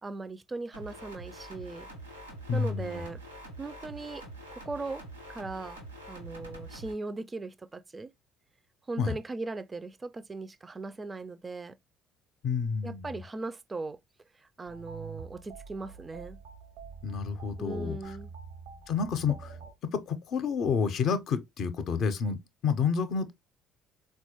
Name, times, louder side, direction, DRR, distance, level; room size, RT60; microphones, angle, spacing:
voice 1, 0.0-1.9 2.5-3.2 3.6-4.2 4.5-5.0 5.3-5.8 6.1-8.1 8.9-11.8 12.8-14.0 14.3-16.4 17.6-18.3, right 3 dB, 25° right, 0.3 m, -38 dB
sound 1, 0.7-6.9, right 1 dB, 85° right, 0.9 m, -45 dB
voice 2, 2.5-3.0 9.0-9.1 12.4-13.1 17.0-18.0 18.9-19.6 19.9-23.3, left 6 dB, 50° left, 0.5 m, -29 dB
sound 2, 14.7-19.7, right 6 dB, 65° right, 0.6 m, -46 dB
4.1 x 2.2 x 2.7 m
figure-of-eight pair, 55°, 0 cm